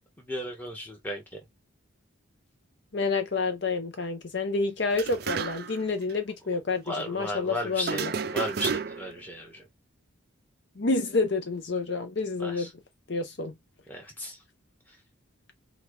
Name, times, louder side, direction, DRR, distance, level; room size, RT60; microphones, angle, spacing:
voice 1, 0.2-1.4 6.8-9.7 12.4-12.7 13.9-14.4 14.9-15.0, equal, 10° left, 1.4 m, -35 dB
voice 2, 2.9-8.1 10.8-12.7 13.1-13.5, left 3 dB, 55° left, 0.7 m, -29 dB
sound 1, 4.9-5.8 6.1-6.2 7.8-9.2, right 5 dB, 50° right, 0.4 m, -32 dB
5.8 x 2.4 x 3.2 m
head